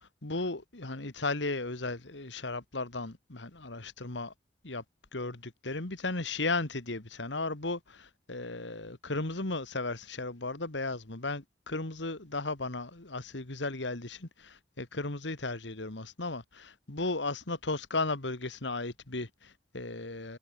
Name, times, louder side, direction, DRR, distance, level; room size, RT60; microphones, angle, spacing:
voice 1, 0.2-4.3 4.6-4.8 5.1-20.4, left 3 dB, 85° left, 2.1 m, -35 dB
head